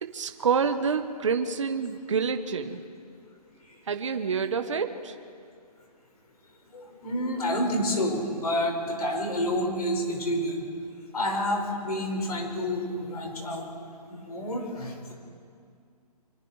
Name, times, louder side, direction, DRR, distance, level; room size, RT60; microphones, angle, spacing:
voice 1, 0.0-2.8 3.9-5.1, right 6 dB, 50° right, 7 dB, 1.2 m, -27 dB
voice 2, 6.7-10.6 11.1-13.7 14.1-15.1, left 1 dB, 70° left, 1 dB, 6.5 m, -29 dB
25.5 x 25.5 x 4.9 m, 2.3 s
hypercardioid pair, 175°, 21 cm